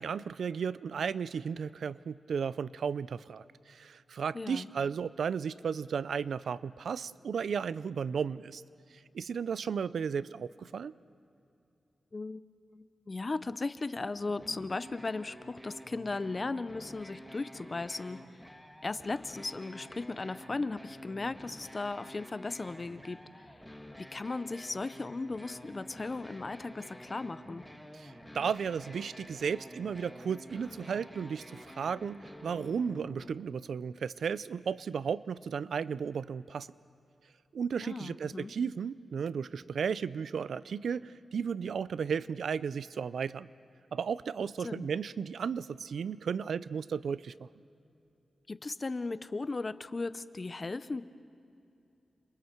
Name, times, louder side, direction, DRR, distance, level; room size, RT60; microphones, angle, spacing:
voice 1, 0.0-8.6 9.1-10.9 27.9-36.7 37.5-43.5 43.9-47.5, right 6 dB, 80° right, 18 dB, 0.4 m, -34 dB
voice 2, 4.3-4.7 12.1-18.5 18.8-23.6 24.0-27.6 37.8-38.5 44.6-44.9 48.5-51.0, left 3 dB, 35° left, 14 dB, 0.7 m, -37 dB
sound 1, 14.1-33.3, equal, 5° left, 1.7 m, -49 dB
29.0 x 27.5 x 4.5 m, 2.7 s
wide cardioid pair, 105°, 0 cm